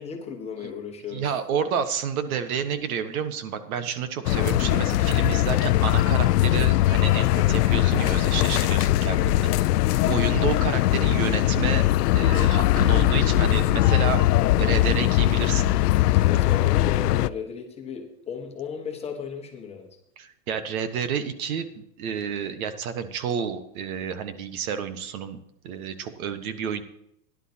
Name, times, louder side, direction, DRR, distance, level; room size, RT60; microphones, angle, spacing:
voice 1, 0.0-1.4 9.0-9.4 16.2-19.9, left 6 dB, 15° left, 1 dB, 1.4 m, -35 dB
voice 2, 1.1-9.5 10.1-11.8 12.1-14.2 14.6-15.7 20.2-25.4 25.6-26.8, right 7 dB, 60° right, 10 dB, 1.4 m, -30 dB
sound 1, 4.2-17.3, left 15 dB, 80° left, 0.6 m, -21 dB
17.5 x 11.0 x 2.9 m, 0.77 s
supercardioid pair, 165°, 47 cm